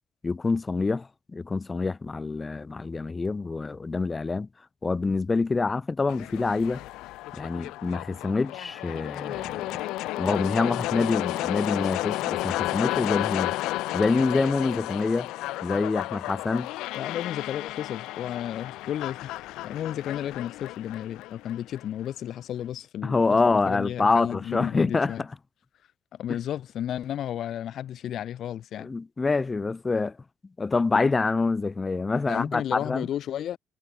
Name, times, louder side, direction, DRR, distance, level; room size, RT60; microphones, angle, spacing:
voice 1, 0.2-4.5 4.8-6.8 7.3-9.8 10.2-13.6 13.9-15.3 15.6-16.7 23.0-25.1 26.3-26.4 28.8-30.2 30.6-33.1, left 3 dB, 25° left, 1.6 m, -26 dB
sound 1, 6.1-22.1, left 17 dB, 85° left, 1.4 m, -32 dB
voice 2, 17.0-25.2 26.1-28.9 32.3-33.6, left 11 dB, 60° left, 2.6 m, -33 dB
cardioid pair, 95°, 0 cm